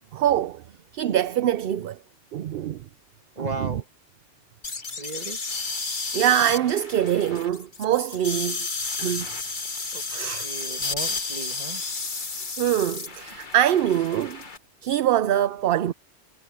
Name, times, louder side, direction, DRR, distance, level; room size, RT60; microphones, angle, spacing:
voice 1, 0.1-0.6 0.9-2.0 2.3-2.9 3.4-3.8 6.1-8.7 9.0-9.3 10.1-10.5 12.6-14.4 14.8-15.9, right 11 dB, 60° right, 0.7 m, -24 dB
voice 2, 3.3-3.8 5.0-5.4 9.9-11.8 12.4-12.5, right 3 dB, 35° right, 1.8 m, -36 dB
sound 1, 4.6-14.6, left 3 dB, 45° left, 1.7 m, -32 dB
omnidirectional pair, 1.2 m